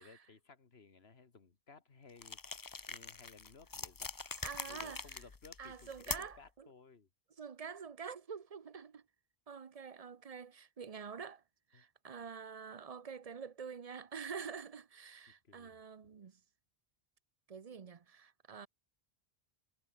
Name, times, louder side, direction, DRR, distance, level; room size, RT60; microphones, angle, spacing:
voice 1, 0.0-4.1 4.7-7.1 11.7-11.8 15.4-15.8, left 4 dB, 80° left, 2.1 m, -59 dB
Bone crushneck twist, 2.2-6.5, left 4 dB, 25° left, 0.5 m, -44 dB
voice 2, 4.4-5.2 5.6-6.7 7.4-9.0 9.5-11.4 11.7-16.4 17.5-18.7, right 6 dB, 40° right, 0.7 m, -47 dB
omnidirectional pair, 1.0 m